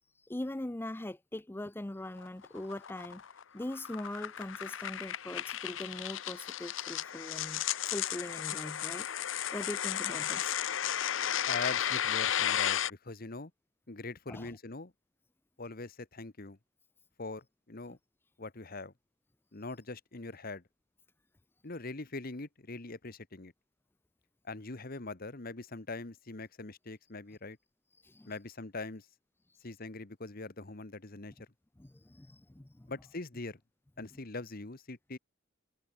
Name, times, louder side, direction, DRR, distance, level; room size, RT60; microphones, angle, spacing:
voice 1, 0.2-3.2 3.5-10.6 14.3-14.5 28.0-28.3 31.8-32.9, left 1 dB, 10° left, 0.5 m, -41 dB
sound 1, 2.2-12.9, left 10 dB, 70° left, 0.7 m, -34 dB
voice 2, 11.5-13.5 13.9-14.9 15.6-16.6 17.2-18.0 18.4-18.9 19.5-20.6 21.6-23.5 24.4-27.6 28.2-29.1 29.6-31.3 32.9-33.6 34.0-35.2, left 3 dB, 50° left, 1.3 m, -42 dB
head